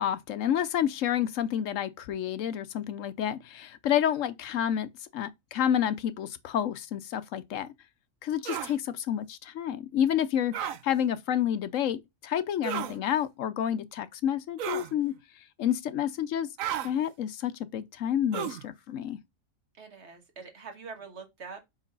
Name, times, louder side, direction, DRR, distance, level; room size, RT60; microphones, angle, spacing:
voice 1, 0.0-7.7 8.2-15.1 15.6-16.5 16.8-19.2, left 10 dB, 75° left, 1.0 m, -29 dB
sound 1, 8.4-8.7 10.5-10.8 12.6-13.0 14.6-14.9 16.6-16.9 18.3-18.6, right 10 dB, 80° right, 1.1 m, -33 dB
voice 2, 19.7-21.6, right 5 dB, 60° right, 1.6 m, -44 dB
4.9 x 3.9 x 5.3 m
omnidirectional pair, 1.4 m